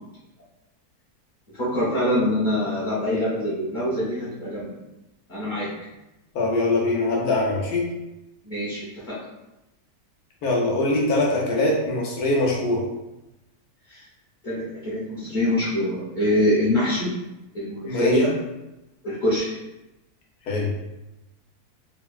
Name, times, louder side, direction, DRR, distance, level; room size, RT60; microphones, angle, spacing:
voice 1, 1.5-4.7 5.3-5.7 8.4-9.2 13.9-14.0 14.4-17.1 17.5-18.3 19.0-19.6, left 1 dB, 35° left, -10 dB, 0.8 m, -24 dB
voice 2, 6.3-7.9 10.4-12.9 17.8-18.2 20.5-20.7, left 2 dB, 75° left, -2 dB, 1.2 m, -23 dB
3.4 x 2.0 x 2.3 m, 0.95 s
omnidirectional pair, 1.7 m